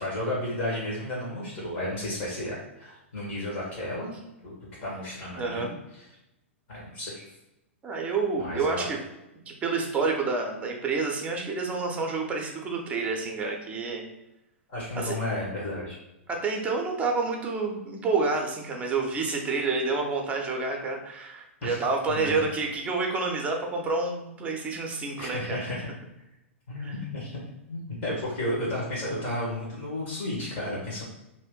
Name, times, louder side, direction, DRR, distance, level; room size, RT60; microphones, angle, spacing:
voice 1, 0.0-4.1 4.4-4.5 4.8-5.7 6.7-7.3 8.4-8.9 14.7-16.0 21.6-21.8 22.1-22.4 25.2-25.9 26.7-27.4 27.7-31.0, left 1 dB, 50° left, -5 dB, 1.2 m, -32 dB
voice 2, 5.4-5.7 7.8-9.0 9.5-14.0 14.9-15.2 16.3-25.6 26.8-26.9, right 4 dB, 20° right, 1 dB, 0.6 m, -29 dB
2.8 x 2.5 x 3.6 m, 0.91 s
figure-of-eight pair, 105°, 7 cm